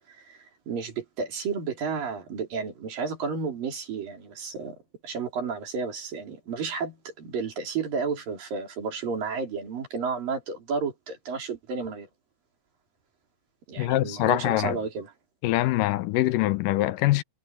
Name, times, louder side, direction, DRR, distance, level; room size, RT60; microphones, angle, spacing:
voice 1, 0.1-4.8 5.0-12.1 13.7-15.1, right 5 dB, 85° right, 5.7 m, -32 dB
voice 2, 13.8-14.8 15.4-17.2, left 16 dB, 85° left, 2.3 m, -24 dB
omnidirectional pair, 3.9 m